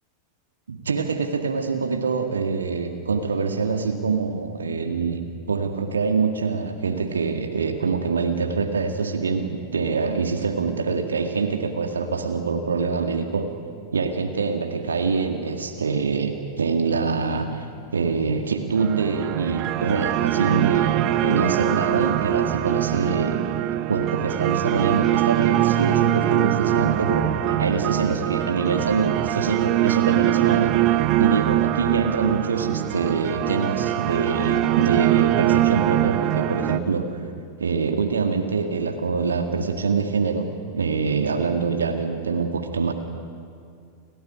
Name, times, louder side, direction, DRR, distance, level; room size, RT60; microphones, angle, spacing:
voice 1, 0.7-13.5 13.9-16.3 16.6-17.7 17.9-23.4 23.9-30.7 31.2-37.1 37.6-40.5 40.7-42.9, right 5 dB, 70° right, 5 dB, 1.9 m, -25 dB
sound 1, 18.8-36.8, right 14 dB, 40° right, 1.1 m, -23 dB
29.5 x 14.0 x 10.0 m, 2.3 s
figure-of-eight pair, 90°, 0 cm